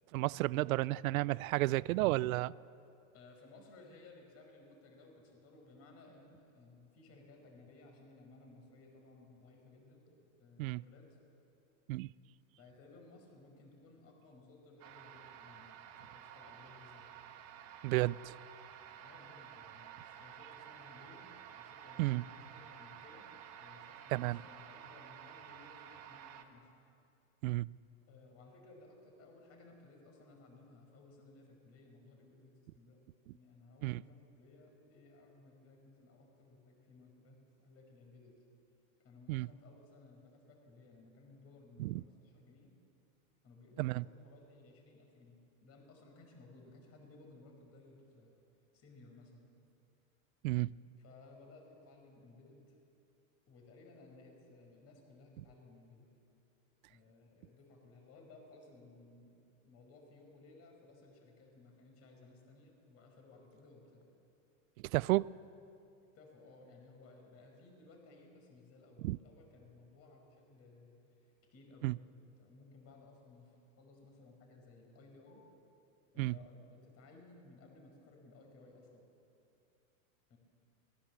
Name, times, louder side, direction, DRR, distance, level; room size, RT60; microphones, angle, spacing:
voice 1, 0.1-2.5 10.6-10.8 11.9-12.1 17.8-18.3 22.0-22.2 24.1-24.4 27.4-27.7 33.8-34.0 39.3-39.5 41.8-42.0 43.8-44.0 50.4-50.8 64.9-65.3 69.0-69.2 71.8-71.9 76.2-76.3, right 19 dB, 75° right, 0.5 m, -32 dB
voice 2, 3.1-11.2 12.5-17.1 19.0-23.3 23.6-26.7 28.1-33.0 33.3-38.4 39.0-42.7 43.4-48.4 48.7-49.5 51.0-52.8 53.5-56.1 56.9-59.3 59.6-64.1 66.1-75.5 76.1-79.0 80.3-80.4, left 2 dB, 35° left, 5.3 m, -59 dB
sound 1, 14.8-26.4, right 10 dB, 40° right, 1.8 m, -52 dB
24.0 x 20.0 x 7.5 m
supercardioid pair, 145°, 42 cm